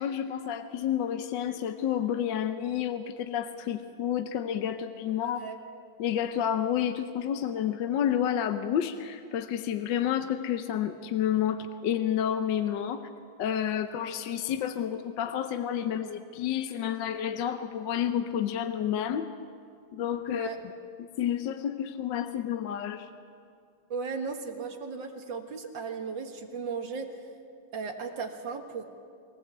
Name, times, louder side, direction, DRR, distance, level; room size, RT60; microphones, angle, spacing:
voice 1, 0.0-5.4 6.0-13.1 13.4-19.3 19.9-20.5 21.0-23.1, left 9 dB, 70° left, 8 dB, 1.3 m, -30 dB
voice 2, 5.2-5.6 20.3-20.6 23.9-27.1 27.7-28.8, right 5 dB, 65° right, 4 dB, 2.2 m, -36 dB
23.0 x 17.0 x 8.0 m, 2.3 s
omnidirectional pair, 2.3 m